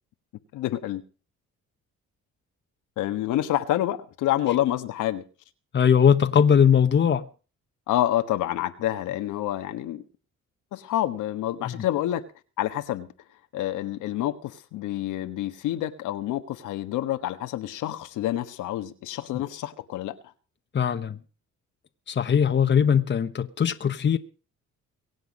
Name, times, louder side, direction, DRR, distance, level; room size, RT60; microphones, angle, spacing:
voice 1, 0.5-1.0 3.0-5.2 7.9-10.0 10.7-12.2 12.6-13.1 13.5-20.2, left 13 dB, 90° left, 1.4 m, -28 dB
voice 2, 5.7-7.2 11.6-11.8 20.7-21.2 22.1-24.2, left 7 dB, 35° left, 1.1 m, -20 dB
23.0 x 8.1 x 5.3 m
cardioid pair, 90°, 30 cm